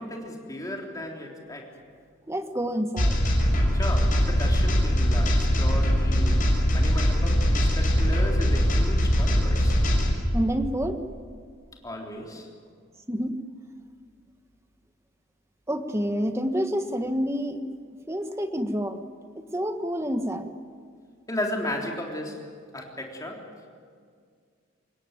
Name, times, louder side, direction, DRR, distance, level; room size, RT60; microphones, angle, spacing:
voice 1, 0.0-1.7 3.7-6.4 6.7-9.8 11.8-12.5 21.3-23.5, left 1 dB, 15° left, 0 dB, 3.6 m, -35 dB
voice 2, 2.3-3.2 10.3-11.0 13.1-13.4 15.7-17.6 18.1-19.0 19.4-20.5, equal, 15° right, 7 dB, 1.4 m, -28 dB
sound 1, 3.0-10.1, equal, 40° left, 6.0 m, -22 dB
25.5 x 21.0 x 9.1 m, 2.1 s
head